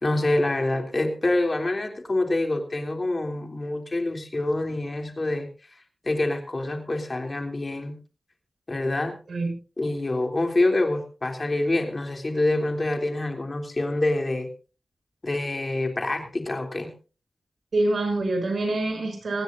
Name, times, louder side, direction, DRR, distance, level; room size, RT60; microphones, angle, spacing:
voice 1, 0.0-5.5 6.0-8.0 8.7-9.2 9.8-14.5 15.2-16.9, left 2 dB, 45° left, 4 dB, 3.3 m, -26 dB
voice 2, 17.7-19.4, right 2 dB, 75° right, 5 dB, 6.2 m, -25 dB
26.5 x 9.9 x 2.7 m, 0.34 s
cardioid pair, 45°, 0 cm